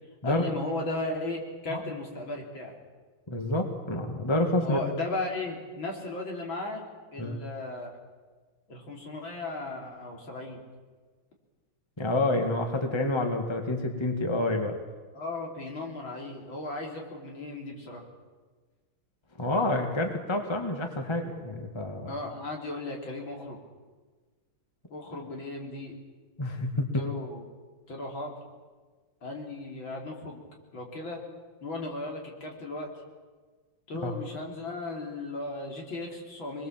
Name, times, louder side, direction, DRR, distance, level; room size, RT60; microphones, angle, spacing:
voice 1, 0.2-2.7 4.6-8.0 8.7-10.6 15.1-18.0 22.1-23.6 24.9-26.0 26.9-27.4 27.9-28.3 29.2-30.4 30.7-31.2 31.6-33.0 33.9-36.7, left 2 dB, 65° left, 0 dB, 4.3 m, -36 dB
voice 2, 3.3-4.8 7.2-7.4 12.0-14.8 19.4-22.1 26.4-26.9 34.0-34.1, left 1 dB, 15° left, 4 dB, 1.9 m, -28 dB
25.0 x 21.0 x 7.4 m, 1.4 s
omnidirectional pair, 2.3 m